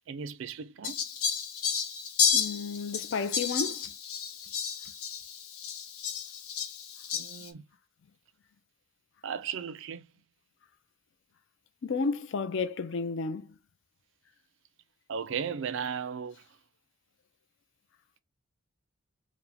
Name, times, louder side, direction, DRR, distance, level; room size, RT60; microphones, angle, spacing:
voice 1, 0.1-1.0 7.1-7.6 9.2-10.1 15.1-16.4, right 7 dB, 55° right, 0.4 m, -36 dB
Fowl, 0.8-7.5, left 7 dB, 80° left, 0.8 m, -32 dB
voice 2, 2.3-3.9 11.8-13.5, left 4 dB, 55° left, 0.4 m, -32 dB
4.8 x 2.1 x 3.4 m
head